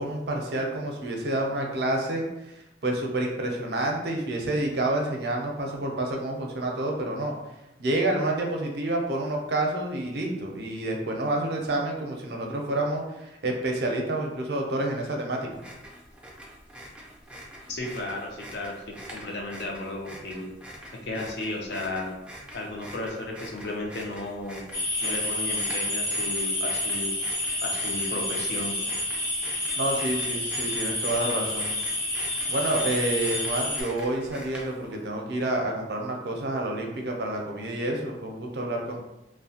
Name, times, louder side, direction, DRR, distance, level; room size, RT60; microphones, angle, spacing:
voice 1, 0.0-2.2 2.8-7.3 7.8-15.6 29.8-31.7 32.5-39.0, right 1 dB, 60° right, 0 dB, 0.5 m, -28 dB
sound 1, 15.5-35.0, equal, 5° right, 0.4 m, -44 dB
voice 2, 17.7-18.7 19.1-20.4 21.0-22.1 22.5-24.6 25.0-27.2 27.6-28.8, left 2 dB, 60° left, 0 dB, 0.5 m, -34 dB
sound 2, 24.7-33.8, left 1 dB, 85° left, 1.0 m, -29 dB
2.7 x 2.1 x 2.7 m, 0.93 s
head